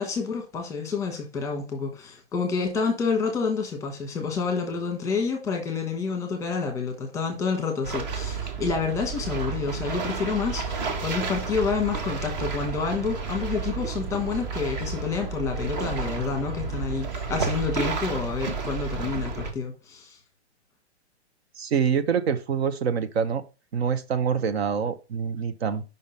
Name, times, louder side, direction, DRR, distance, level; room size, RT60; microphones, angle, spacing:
voice 1, 0.0-20.2, left 5 dB, 10° left, 1.1 m, -28 dB
sound 1, 7.8-19.5, right 5 dB, 40° right, 1.2 m, -31 dB
voice 2, 21.6-23.4 23.7-25.8, right 7 dB, 65° right, 0.9 m, -25 dB
5.5 x 3.7 x 5.6 m
hypercardioid pair, 160°, 34 cm